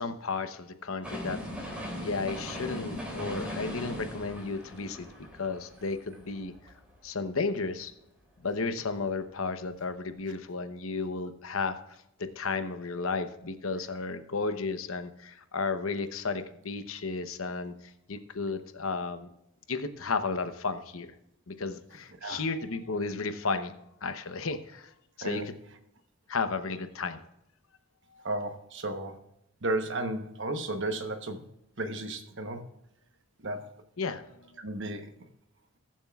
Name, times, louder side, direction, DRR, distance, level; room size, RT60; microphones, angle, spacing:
voice 1, 0.0-1.4 2.0-5.1 5.4-6.5 7.0-7.9 8.4-17.7 18.1-19.3 19.7-21.1 21.5-23.7 24.0-25.5 26.3-27.2 28.1-28.2 34.0-34.6, left 4 dB, 70° left, 9 dB, 0.9 m, -33 dB
sound 1, 1.0-7.0 7.4-7.5, equal, 5° right, 2.9 m, -39 dB
voice 2, 28.2-29.2 29.6-31.5 31.8-32.6 33.4-33.7 34.6-35.1, right 2 dB, 55° right, 7 dB, 1.1 m, -33 dB
21.0 x 7.4 x 2.4 m, 0.81 s
head